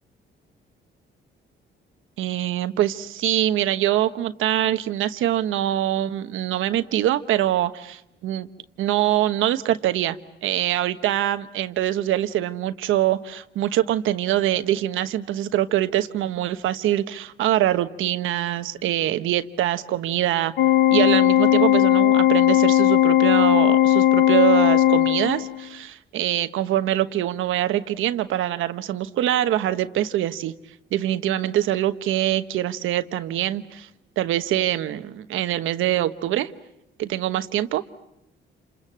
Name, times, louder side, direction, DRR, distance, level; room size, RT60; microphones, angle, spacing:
voice 1, 2.2-8.5 8.8-10.2 10.4-20.5 20.9-30.5 30.9-33.9 34.2-36.5 37.0-37.8, right 12 dB, 85° right, 11 dB, 1.1 m, -24 dB
Organ, 20.6-25.6, left 12 dB, 85° left, 1.0 m, -17 dB
28.5 x 27.5 x 7.5 m, 0.84 s
cardioid pair, 90°, 20 cm